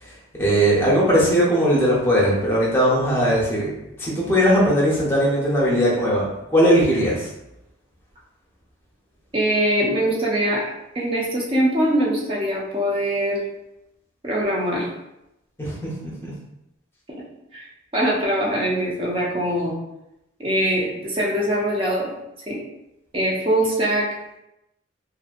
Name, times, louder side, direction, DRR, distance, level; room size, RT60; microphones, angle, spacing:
voice 1, 0.0-3.7 4.0-7.3 15.6-16.3, equal, 10° left, -6 dB, 0.7 m, -19 dB
voice 2, 9.3-10.6 10.9-13.4 14.2-14.9 17.5-17.7 17.9-19.8 20.4-22.1 22.5-22.6 23.1-24.1, right 1 dB, 25° right, -4 dB, 0.6 m, -22 dB
2.7 x 2.6 x 2.4 m, 0.90 s
head